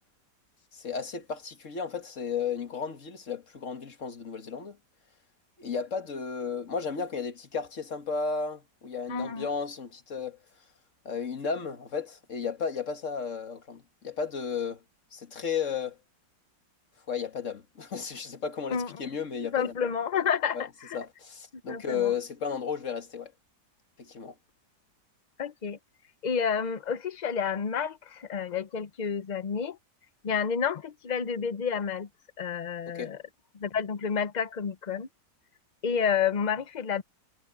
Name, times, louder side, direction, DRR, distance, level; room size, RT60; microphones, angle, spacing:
voice 1, 0.7-4.8 5.6-10.4 11.1-14.8 15.1-16.0 17.1-19.7 20.5-20.6 20.9-23.3 24.0-24.3 32.9-33.1, left 6 dB, 45° left, 2.0 m, -34 dB
voice 2, 9.1-9.5 18.7-18.9 19.5-21.0 21.7-22.1 25.4-25.8 26.2-29.8 30.2-32.1 32.4-33.2 33.6-35.1 35.8-37.0, left 7 dB, 60° left, 0.4 m, -30 dB
omnidirectional pair, 1.9 m